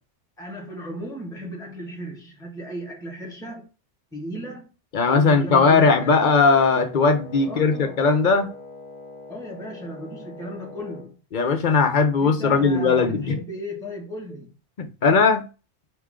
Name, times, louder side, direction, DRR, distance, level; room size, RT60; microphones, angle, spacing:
voice 1, 0.4-3.7 4.1-4.7 5.0-6.2 7.4-8.0 9.3-11.2 12.2-14.5, right 1 dB, 5° left, 1.4 m, -35 dB
voice 2, 4.9-8.5 11.3-13.3 14.8-15.4, left 4 dB, 50° left, 0.7 m, -19 dB
Wind instrument woodwind instrument, 5.7-11.1, left 3 dB, 25° right, 1.4 m, -42 dB
4.6 x 3.0 x 3.7 m
omnidirectional pair, 1.2 m